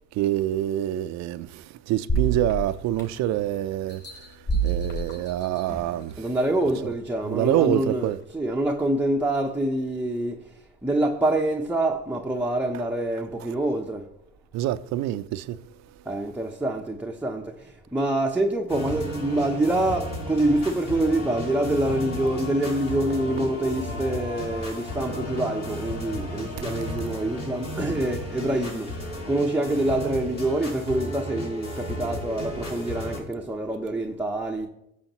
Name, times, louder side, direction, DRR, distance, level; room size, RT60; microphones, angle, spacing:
voice 1, 0.2-4.0 4.6-6.3 6.8-6.9 7.2-8.2 14.5-15.6, right 13 dB, 60° right, 0.6 m, -26 dB
sound 1, 2.1-3.4 3.9-6.0 6.6-6.7, right 4 dB, 35° left, 3.9 m, -28 dB
voice 2, 6.2-10.4 10.8-14.1 16.1-34.7, right 1 dB, 5° right, 0.7 m, -26 dB
sound 2, 18.7-33.2, left 1 dB, 75° left, 3.7 m, -34 dB
14.5 x 7.0 x 3.0 m
supercardioid pair, 85°, 32 cm